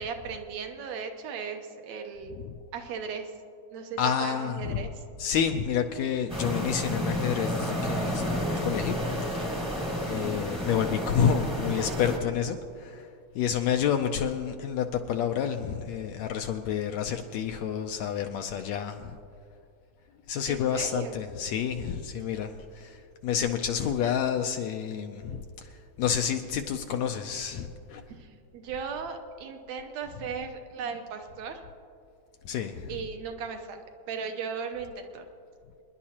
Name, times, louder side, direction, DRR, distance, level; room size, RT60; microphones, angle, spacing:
voice 1, 0.0-2.4 2.7-3.3 3.7-5.0 8.6-8.7 20.5-21.2 28.1-31.7 32.9-33.8 34.1-35.3, right 6 dB, 75° right, 5 dB, 2.1 m, -37 dB
voice 2, 4.0-4.9 5.2-9.0 9.4-9.5 10.1-13.1 13.3-19.2 20.3-28.0 32.4-33.0, left 8 dB, 80° left, 5 dB, 1.7 m, -29 dB
sound 1, 6.3-12.2, equal, 5° right, 0.9 m, -31 dB
26.5 x 11.0 x 2.9 m, 2.4 s
omnidirectional pair, 3.4 m